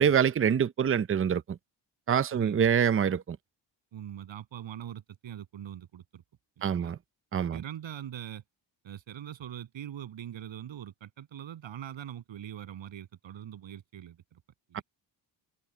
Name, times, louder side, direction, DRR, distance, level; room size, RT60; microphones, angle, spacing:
voice 1, 0.0-1.6 2.1-3.4 6.6-7.0 7.3-7.6 14.7-14.8, right 8 dB, 30° right, 0.6 m, -25 dB
voice 2, 3.9-6.2 6.6-6.9 7.5-8.4 8.8-14.4 14.7-14.8, right 10 dB, 80° right, 7.9 m, -42 dB
cardioid pair, 130°, 45 cm